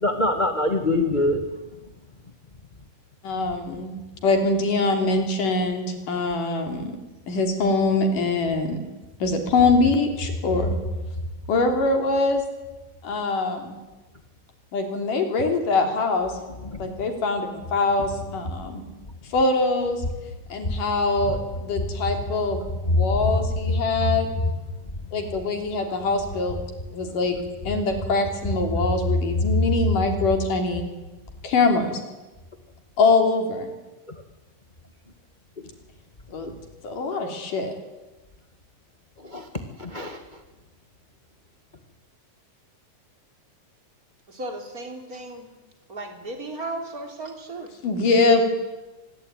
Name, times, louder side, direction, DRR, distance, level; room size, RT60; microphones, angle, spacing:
voice 1, 0.0-1.4 16.6-16.9 21.2-21.3 22.8-23.4 24.0-24.1 34.1-34.2 36.4-36.6 39.2-39.5 39.8-40.2, left 2 dB, 20° left, 6 dB, 1.2 m, -24 dB
voice 2, 3.2-6.9 7.3-8.8 9.2-10.7 11.5-12.4 13.0-13.8 14.7-16.4 16.8-18.8 19.2-20.0 20.5-24.3 25.1-26.6 26.9-27.4 27.6-30.8 31.4-32.0 33.0-33.7 36.3-36.5 36.8-37.7 47.8-48.4, left 3 dB, 70° left, 5 dB, 4.9 m, -23 dB
voice 3, 44.3-45.5 45.9-47.7, right 2 dB, 25° right, 4 dB, 3.8 m, -35 dB
25.0 x 21.5 x 9.5 m, 1.1 s
omnidirectional pair, 3.9 m